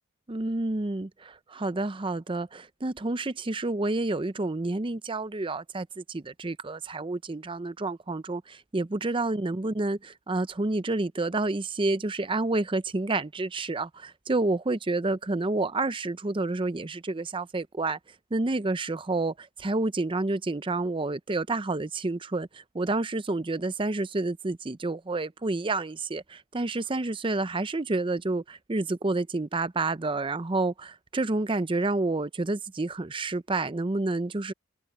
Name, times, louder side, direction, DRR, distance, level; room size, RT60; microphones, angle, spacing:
voice 1, 0.3-18.0 18.3-19.3 19.6-34.5, right 2 dB, 25° right, 0.6 m, -29 dB
head